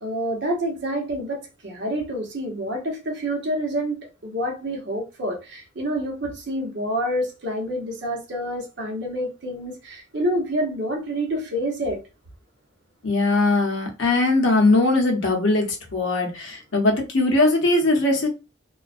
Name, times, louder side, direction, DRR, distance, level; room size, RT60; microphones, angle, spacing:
voice 1, 0.0-12.0, equal, 60° right, 0.8 m, -28 dB
voice 2, 13.0-18.3, left 2 dB, 65° left, 0.8 m, -20 dB
2.3 x 2.2 x 2.4 m
head